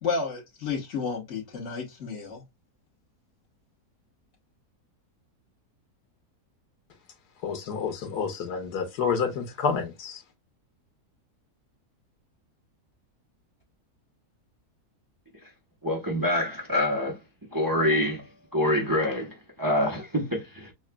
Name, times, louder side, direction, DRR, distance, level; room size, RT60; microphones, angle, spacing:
voice 1, 0.0-2.4, left 5 dB, 50° left, 1.6 m, -31 dB
voice 2, 7.4-10.2, left 6 dB, 85° left, 1.5 m, -29 dB
voice 3, 15.8-17.2 17.5-20.7, left 1 dB, 20° right, 0.7 m, -26 dB
6.2 x 2.3 x 2.2 m
omnidirectional pair, 1.7 m